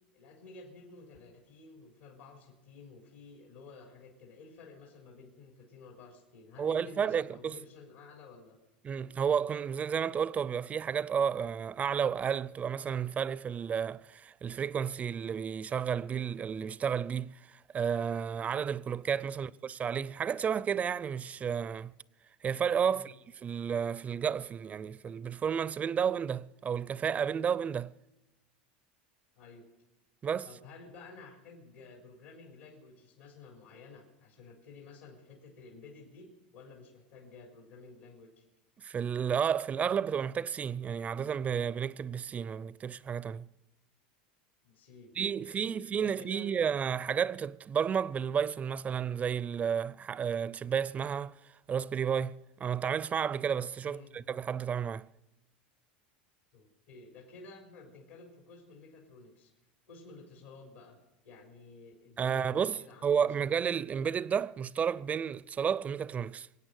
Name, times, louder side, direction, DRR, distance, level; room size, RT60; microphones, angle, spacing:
voice 1, 0.1-8.6 19.3-19.7 22.8-23.1 29.4-29.6 30.4-38.4 44.6-46.6 53.9-54.2 56.5-59.5 59.9-61.0 61.2-63.3, left 3 dB, 80° left, 3.8 m, -52 dB
voice 2, 6.6-7.5 8.8-21.9 22.4-23.1 23.4-27.9 30.2-30.5 38.8-43.5 45.2-51.4 51.7-55.1 62.2-66.5, right 7 dB, 25° right, 0.5 m, -32 dB
23.5 x 8.8 x 6.5 m
supercardioid pair, 105°, 5 cm